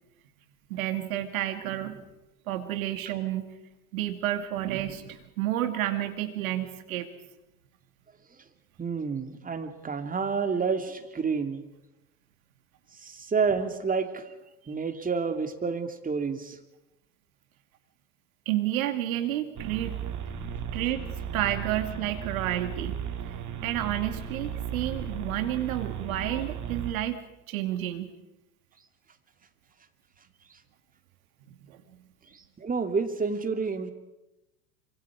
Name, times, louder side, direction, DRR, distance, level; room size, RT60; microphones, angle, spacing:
voice 1, 0.7-2.0 2.5-3.5 3.9-7.1 18.5-20.0 20.7-21.1 21.3-23.0 23.3-27.2 27.5-28.1 31.5-31.8, right 13 dB, 65° right, 8 dB, 2.5 m, -30 dB
voice 2, 8.8-11.6 13.0-14.3 14.7-16.6 32.3-33.9, right 5 dB, 20° right, 6 dB, 2.4 m, -29 dB
sound 1, 19.6-26.9, right 7 dB, 40° right, 2.9 m, -35 dB
26.5 x 25.0 x 4.9 m, 0.95 s
hypercardioid pair, 80°, 44 cm